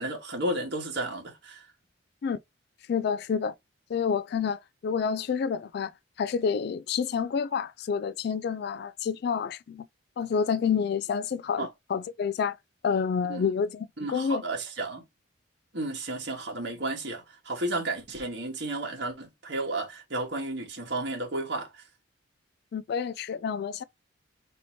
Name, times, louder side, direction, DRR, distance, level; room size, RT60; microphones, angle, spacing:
voice 1, 0.0-1.6 11.6-11.7 13.3-13.5 14.0-15.0 15.7-21.8, right 2 dB, 60° right, 1.8 m, -33 dB
voice 2, 2.9-3.5 3.9-5.9 6.2-9.9 10.2-12.6 12.8-14.4 22.7-23.8, left 6 dB, 55° left, 0.3 m, -28 dB
4.2 x 2.9 x 4.1 m
head